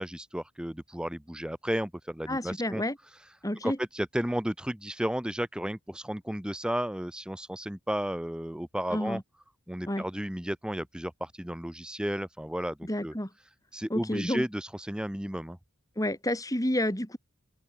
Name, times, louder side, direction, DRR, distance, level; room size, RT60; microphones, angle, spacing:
voice 1, 0.0-3.3 3.6-9.2 9.7-13.1 13.7-15.6, equal, 5° right, 0.7 m, -33 dB
voice 2, 2.3-3.0 3.4-3.8 8.9-9.2 9.9-10.1 12.8-13.3 13.9-14.4 16.0-17.2, left 1 dB, 15° left, 3.5 m, -30 dB
open air
head